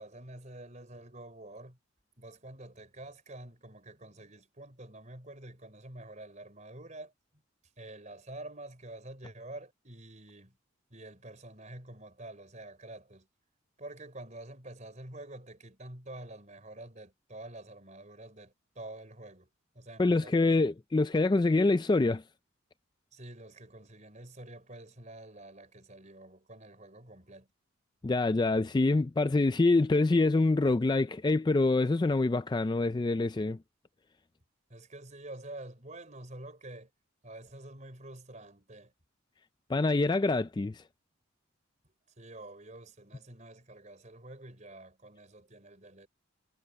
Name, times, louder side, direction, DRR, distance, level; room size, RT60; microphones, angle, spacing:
voice 1, 0.0-1.8 2.2-7.1 7.8-10.6 10.9-13.3 13.8-19.5 19.7-20.7 23.1-27.5 34.7-36.9 37.2-38.9 42.2-46.1, right 1 dB, 35° right, 4.6 m, -48 dB
voice 2, 20.0-22.2 28.0-33.6 39.7-40.8, left 2 dB, 20° left, 0.3 m, -26 dB
head